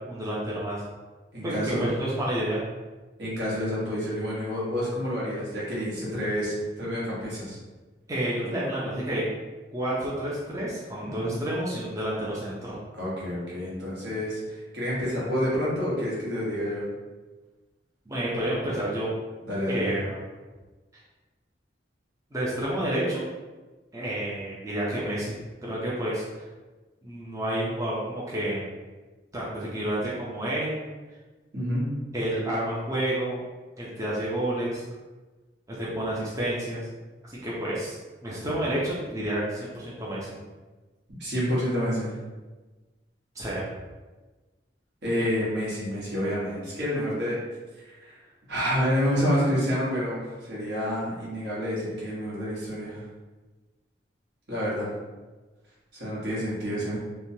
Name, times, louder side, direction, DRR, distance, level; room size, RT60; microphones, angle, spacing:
voice 1, 0.1-0.8 1.4-2.6 8.1-9.2 9.7-12.8 18.1-19.1 19.7-20.2 22.3-23.2 23.9-25.3 25.6-26.2 27.0-28.7 29.3-30.8 32.1-33.4 33.8-34.8 35.7-36.9 37.2-38.0 38.2-40.4 43.4-43.7, right 1 dB, 20° right, -7 dB, 0.5 m, -29 dB
voice 2, 1.3-1.9 3.2-7.6 11.0-11.4 12.9-16.8 19.4-20.0 31.5-31.9 41.1-42.2 45.0-47.4 47.8-48.2 48.5-53.0 54.5-54.9 55.9-57.0, equal, 70° right, -7 dB, 1.2 m, -28 dB
3.1 x 2.1 x 2.7 m, 1.2 s
head